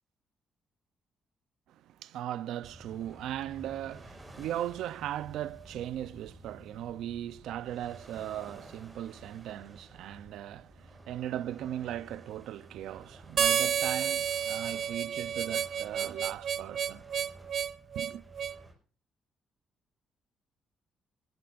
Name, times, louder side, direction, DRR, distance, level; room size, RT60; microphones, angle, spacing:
voice 1, 1.7-17.0 18.0-18.2, right 12 dB, 85° right, 0.6 m, -38 dB
sound 1, 2.6-18.7, right 1 dB, 20° right, 5.6 m, -52 dB
Harmonica, 13.4-18.6, right 8 dB, 60° right, 0.9 m, -30 dB
18.5 x 17.5 x 2.6 m
cardioid pair, 90°, 0 cm